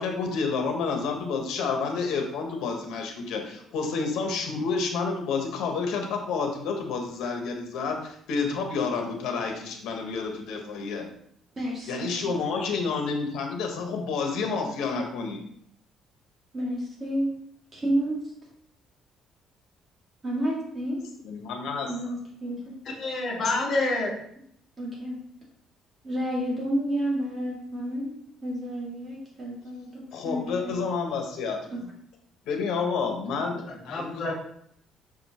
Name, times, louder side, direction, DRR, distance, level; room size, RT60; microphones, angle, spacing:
voice 1, 0.0-11.0 11.9-15.4 21.2-21.9 30.1-31.6 32.5-34.3, left 4 dB, 80° left, 3 dB, 1.3 m, -29 dB
voice 2, 11.6-12.4 16.5-17.3 17.7-18.2 20.2-21.0 21.9-22.8 24.8-25.2 26.0-28.1 28.4-30.8 31.7-31.9, right 1 dB, 25° right, -5 dB, 2.5 m, -30 dB
voice 3, 23.0-24.1 33.7-34.3, left 2 dB, 45° left, -4 dB, 1.9 m, -28 dB
6.4 x 5.2 x 3.0 m, 0.69 s
cardioid pair, 145°, 0 cm